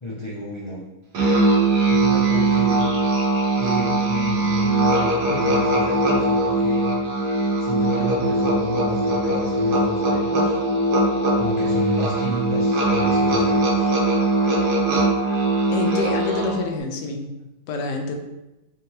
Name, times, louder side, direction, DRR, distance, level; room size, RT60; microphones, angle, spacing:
voice 1, 0.0-0.8 1.9-3.0 3.5-6.9 7.6-10.6 11.4-13.9, left 1 dB, 45° left, -8 dB, 0.3 m, -31 dB
Musical instrument, 1.1-16.7, right 2 dB, 75° right, 1.5 m, -20 dB
voice 2, 15.7-17.3 17.7-18.2, left 4 dB, 85° left, 3 dB, 1.3 m, -27 dB
3.6 x 3.4 x 3.0 m, 0.99 s
omnidirectional pair, 1.8 m